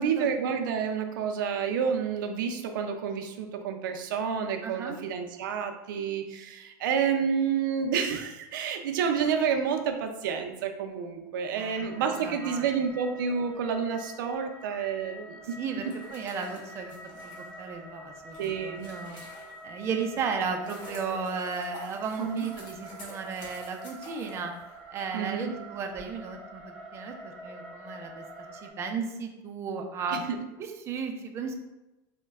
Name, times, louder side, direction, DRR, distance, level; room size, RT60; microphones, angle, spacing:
voice 1, 0.0-15.6 18.4-18.9 22.2-22.5 25.1-25.5 30.1-30.4, right 6 dB, 90° right, 5 dB, 0.5 m, -29 dB
voice 2, 4.6-5.0 11.5-12.8 15.6-16.9 17.2-19.2 19.6-24.5 24.9-28.2 28.5-30.2 30.6-31.5, right 5 dB, 25° right, 4 dB, 0.4 m, -35 dB
sound 1, 11.8-28.7, right 1 dB, ahead, 0.7 m, -46 dB
sound 2, 15.7-19.8 20.3-25.0, left 1 dB, 45° left, 1.0 m, -49 dB
3.1 x 2.1 x 3.4 m, 1.0 s
supercardioid pair, 155°, 11 cm